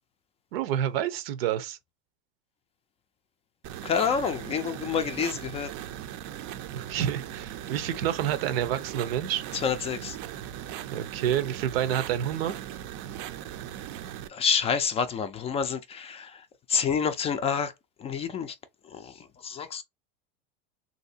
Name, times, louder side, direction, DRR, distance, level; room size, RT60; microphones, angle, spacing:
voice 1, 0.5-1.8 6.7-9.4 10.9-12.5, right 10 dB, 85° right, 0.8 m, -28 dB
sound 1, 3.6-14.3, right 11 dB, 50° right, 0.5 m, -39 dB
voice 2, 3.8-5.7 9.5-10.2 14.3-16.4 16.7-17.7 18.0-18.5 18.9-19.1 19.4-19.8, left 6 dB, 20° left, 0.3 m, -28 dB
3.2 x 2.7 x 2.7 m
supercardioid pair, 135°, 29 cm